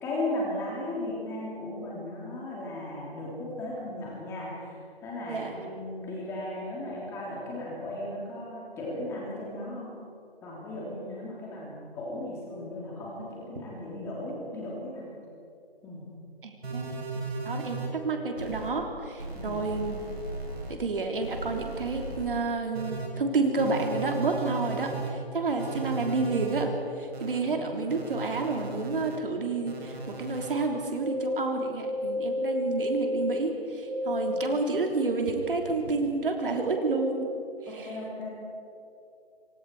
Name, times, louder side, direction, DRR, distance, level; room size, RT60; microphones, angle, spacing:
voice 1, 0.0-4.7 5.0-9.9 10.4-15.1 15.8-16.1 19.3-19.6 27.4-27.8 34.3-34.4 37.7-38.3, left 1 dB, 10° left, -5 dB, 3.5 m, -36 dB
voice 2, 16.4-17.0 17.4-20.0 20.7-37.3 37.6-37.9, right 3 dB, 55° right, 3 dB, 3.4 m, -30 dB
sound 1, 16.6-17.9 18.4-18.7 19.2-20.7 21.2-22.3 22.7-23.1 23.6-25.1 25.6-26.6 27.1-27.4 27.9-29.2 29.7-30.5 31.0-31.3 31.8-33.4 33.9-34.5, right 1 dB, 75° right, 7.7 m, -34 dB
27.0 x 23.5 x 4.8 m, 2.6 s
figure-of-eight pair, 160°, 32 cm